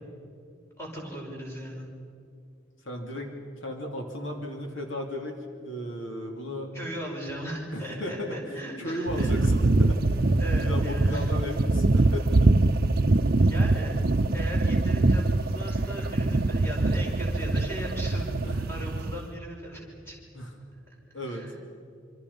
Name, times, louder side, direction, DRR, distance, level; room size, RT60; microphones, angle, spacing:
voice 1, 0.8-1.9 6.7-9.3 10.4-11.3 13.5-14.0 14.3-18.3 18.7-20.2 21.2-21.5, equal, 10° left, -2 dB, 5.6 m, -38 dB
voice 2, 2.8-6.7 7.7-8.4 8.8-12.6 18.4-18.6 20.3-20.5 21.1-21.5, left 1 dB, 70° left, 2 dB, 3.0 m, -35 dB
sound 1, 9.1-19.2, right 2 dB, 45° right, 0.7 m, -24 dB
26.5 x 26.5 x 5.6 m, 2.4 s
head